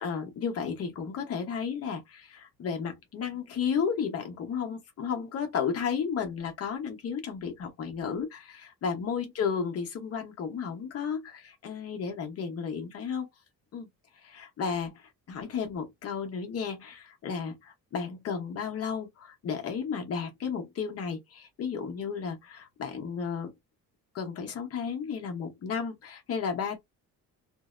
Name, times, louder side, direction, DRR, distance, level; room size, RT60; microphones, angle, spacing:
voice 1, 0.0-13.3 13.7-13.9 14.2-23.5 24.1-26.8, left 6 dB, 45° left, 0.8 m, -33 dB
2.6 x 2.0 x 2.4 m
cardioid pair, 160°, 33 cm